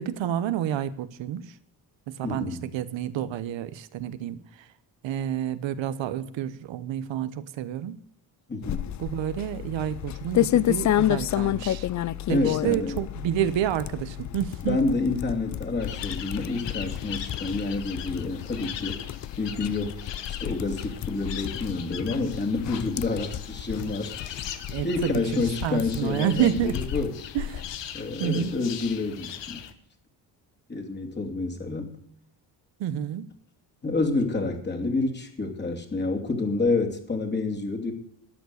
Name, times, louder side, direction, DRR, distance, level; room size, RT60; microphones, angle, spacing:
voice 1, 0.0-1.5 2.1-4.4 5.0-8.0 9.0-11.9 12.3-14.8 24.7-25.2 25.6-26.7 27.3-27.6 28.2-28.6 32.8-33.3, right 10 dB, 80° right, 14 dB, 1.1 m, -29 dB
voice 2, 2.2-2.6 8.5-8.8 12.3-13.0 14.6-19.0 19.4-20.0 20.3-24.1 24.8-27.1 27.9-29.6 30.7-32.0 33.8-37.9, left 3 dB, 25° left, 2 dB, 2.6 m, -28 dB
sound 1, 8.6-27.8, left 13 dB, 40° left, 0.4 m, -31 dB
sound 2, 15.8-29.7, left 9 dB, 70° left, 1.5 m, -40 dB
13.5 x 9.5 x 6.6 m, 0.68 s
cardioid pair, 140°, 44 cm